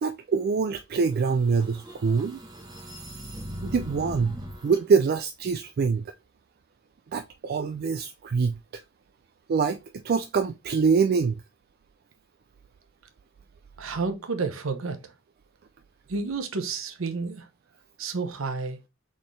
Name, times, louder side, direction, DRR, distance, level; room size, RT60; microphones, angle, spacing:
voice 1, 0.0-2.4 3.6-6.1 7.1-8.8 9.5-11.4, right 5 dB, 50° right, 0.3 m, -25 dB
sound 1, 1.1-4.8, equal, 20° right, 1.0 m, -40 dB
voice 2, 13.8-15.1 16.1-17.5 18.0-18.8, right 4 dB, 80° right, 0.9 m, -30 dB
4.1 x 3.8 x 3.2 m
head